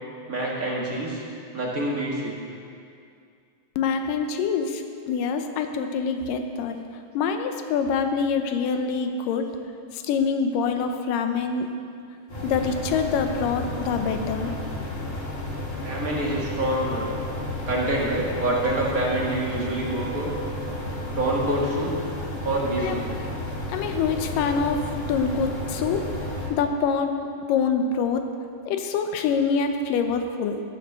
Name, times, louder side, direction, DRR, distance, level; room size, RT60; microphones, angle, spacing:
voice 1, 0.3-1.2 1.5-2.3 15.8-17.1 17.7-20.3 21.1-21.9 22.4-23.1, right 1 dB, 35° right, -4 dB, 1.8 m, -26 dB
voice 2, 3.8-6.8 7.1-9.5 9.9-11.7 12.4-14.5 22.8-23.0 23.7-26.0 26.5-27.1 27.5-28.3 28.7-30.6, left 5 dB, 90° left, 6 dB, 2.5 m, -25 dB
sound 1, 12.3-26.5, left 1 dB, 30° left, 1.2 m, -32 dB
15.0 x 7.6 x 6.9 m, 2.4 s
omnidirectional pair, 3.8 m